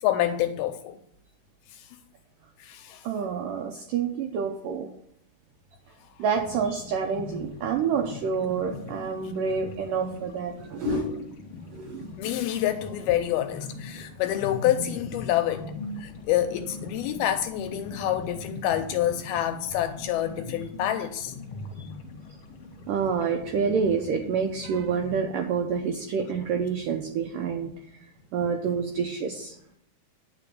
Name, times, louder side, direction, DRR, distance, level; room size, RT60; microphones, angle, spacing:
voice 1, 0.0-1.0 1.7-1.9 2.6-3.1 10.9-11.3 12.2-15.7 16.0-21.3, left 12 dB, 80° left, 2.3 m, -27 dB
voice 2, 3.0-4.9 6.2-11.1 11.7-12.1 21.8-21.9 22.9-28.0 28.3-29.6, right 6 dB, 85° right, 1.9 m, -28 dB
sound 1, 6.3-25.2, left 3 dB, 60° left, 1.6 m, -41 dB
10.0 x 5.1 x 7.0 m
omnidirectional pair, 4.8 m